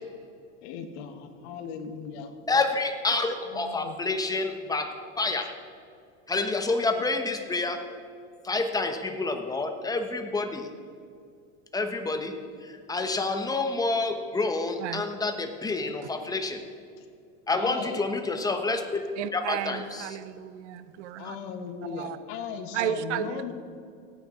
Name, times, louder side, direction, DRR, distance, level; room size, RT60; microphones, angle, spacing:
voice 1, 0.6-2.3 3.5-4.0 17.0-17.1 17.6-18.0 21.2-23.5, left 6 dB, 65° left, 7 dB, 1.4 m, -37 dB
voice 2, 2.5-5.5 6.3-7.8 8.4-10.7 11.7-16.6 17.5-18.8 19.3-20.1, left 3 dB, 10° left, 6 dB, 1.1 m, -28 dB
voice 3, 19.2-21.4 21.9-22.2 22.7-23.4, right 10 dB, 85° right, 13 dB, 0.7 m, -33 dB
17.0 x 9.2 x 3.8 m, 2.4 s
supercardioid pair, 115°, 34 cm